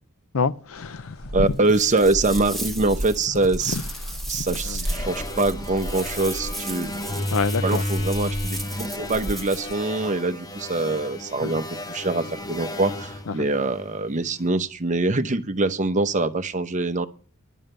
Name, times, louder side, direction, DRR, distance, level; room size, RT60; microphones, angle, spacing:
voice 1, 0.3-1.6 3.7-4.9 7.3-7.8 11.4-11.6 13.3-13.5, left 5 dB, 65° left, 0.6 m, -28 dB
sound 1, 0.8-9.7, equal, 45° left, 1.6 m, -34 dB
voice 2, 1.3-3.8 4.3-6.9 7.6-17.1, right 2 dB, 35° right, 0.8 m, -24 dB
sound 2, 1.6-9.8, right 2 dB, ahead, 1.2 m, -37 dB
sound 3, 4.8-14.3, left 1 dB, 15° left, 0.8 m, -32 dB
11.0 x 7.2 x 7.7 m
head